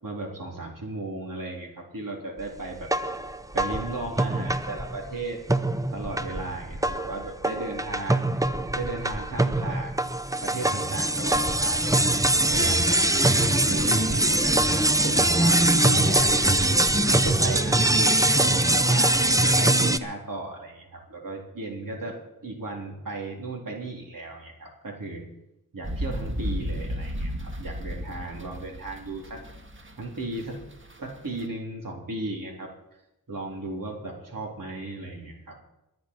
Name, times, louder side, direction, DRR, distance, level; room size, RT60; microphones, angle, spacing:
voice 1, 0.0-3.1 3.5-5.4 5.9-10.1 10.4-12.2 12.5-14.6 15.0-16.6 17.1-25.3 25.7-29.4 30.0-30.6 31.0-32.7 33.3-35.6, right 2 dB, 65° right, -1 dB, 3.9 m, -35 dB
sound 1, 2.8-5.2 5.5-20.0, right 1 dB, 10° right, 0.7 m, -23 dB
sound 2, 25.8-31.4, equal, 35° right, 1.9 m, -34 dB
23.0 x 8.9 x 4.8 m, 0.90 s
wide cardioid pair, 65°, 36 cm